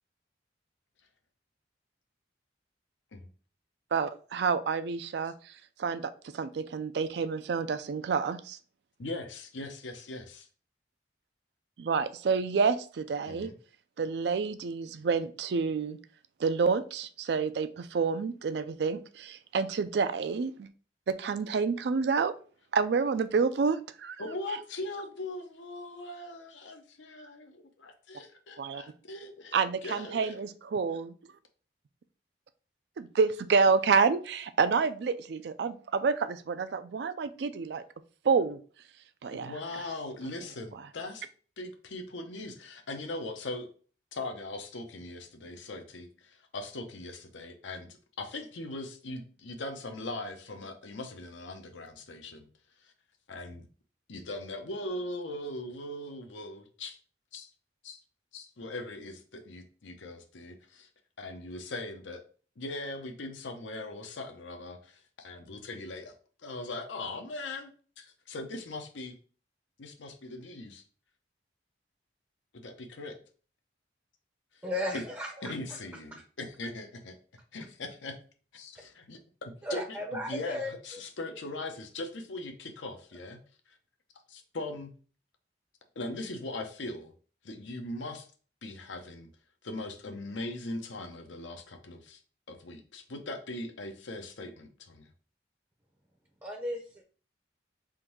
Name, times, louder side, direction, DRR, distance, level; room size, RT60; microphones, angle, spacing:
voice 1, 3.9-5.5 5.8-8.6 11.8-13.5 14.0-16.0 16.4-20.7 21.1-22.3 22.7-24.2 28.6-28.8 29.5-31.1 33.0-37.8 38.2-38.6 39.2-39.5, right 5 dB, 60° right, 0.4 m, -28 dB
voice 2, 9.0-10.5 13.3-13.5 24.2-29.6 29.8-30.4 39.3-41.3 41.6-43.7 44.1-47.9 48.2-52.5 52.8-52.9 53.3-53.7 54.1-57.0 57.3-57.5 57.8-58.0 58.3-60.9 61.2-62.2 62.6-66.1 66.4-67.7 68.0-69.2 69.8-70.8 72.5-73.2 74.9-75.0 75.4-77.2 77.5-78.2 78.5-79.8 80.1-83.4 83.7-83.8 84.3-84.9 86.0-87.1 87.4-88.3 88.6-89.3 89.6-92.2 92.5-95.1, left 2 dB, 85° left, 0.7 m, -40 dB
voice 3, 74.6-75.8 79.6-80.7 96.4-97.0, left 1 dB, 10° right, 0.5 m, -35 dB
3.7 x 2.6 x 4.5 m
head